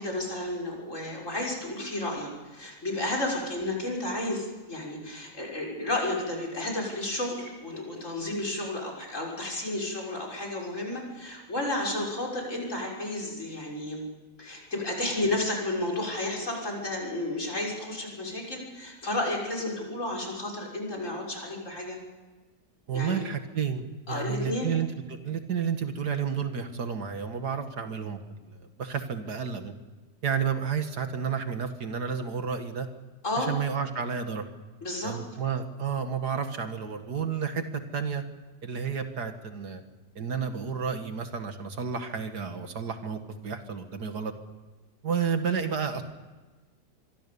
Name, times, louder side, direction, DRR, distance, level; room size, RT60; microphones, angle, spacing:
voice 1, 0.0-14.0 14.4-22.0 22.9-23.2 24.1-24.7 33.2-33.5 34.8-35.2, left 1 dB, 45° left, 1 dB, 6.6 m, -32 dB
voice 2, 22.9-29.7 30.2-32.9 33.4-34.4 35.0-37.6 37.9-38.2 38.6-39.8 40.2-44.3 45.0-46.0, right 6 dB, 70° right, 7 dB, 2.3 m, -31 dB
26.0 x 23.5 x 7.0 m, 1.3 s
omnidirectional pair, 1.8 m